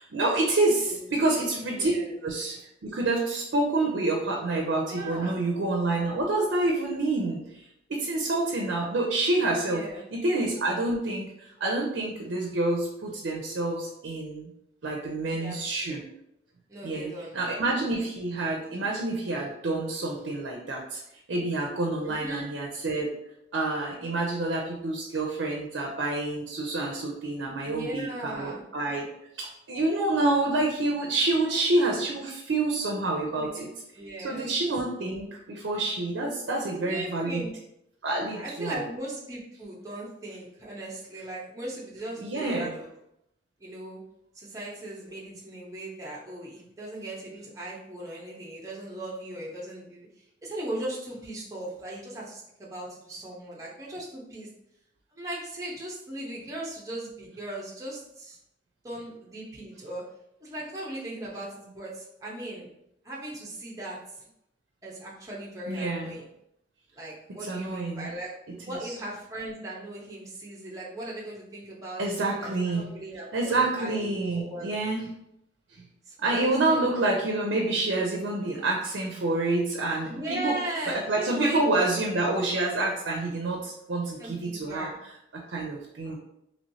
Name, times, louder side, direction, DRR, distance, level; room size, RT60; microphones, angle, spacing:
voice 1, 0.0-1.9 2.2-7.6 7.9-9.8 10.1-14.5 14.8-16.0 16.8-21.0 21.3-23.1 23.5-29.0 29.4-33.7 34.2-37.5 38.0-38.8 42.2-42.7 65.7-66.2 67.5-68.1 68.7-68.8 72.0-73.0 73.3-75.1 76.2-80.6 80.9-84.9 85.3-86.2, right 2 dB, 75° right, 0 dB, 0.5 m, -28 dB
voice 2, 0.9-1.3 1.7-2.1 4.9-5.4 9.6-10.0 15.3-15.6 15.8-16.0 16.7-17.4 22.0-22.5 27.6-28.6 31.5-31.6 33.3-33.7 34.0-34.5 36.8-37.5 38.3-42.9 43.6-44.0 44.3-50.1 50.4-54.5 55.1-58.4 58.8-60.0 60.4-62.7 63.0-64.3 64.8-66.3 66.9-68.3 68.7-74.0 74.3-74.7 76.1-77.0 80.1-81.6 84.2-85.0, right 1 dB, 15° right, -5 dB, 0.7 m, -38 dB
3.1 x 3.0 x 2.7 m, 0.81 s
head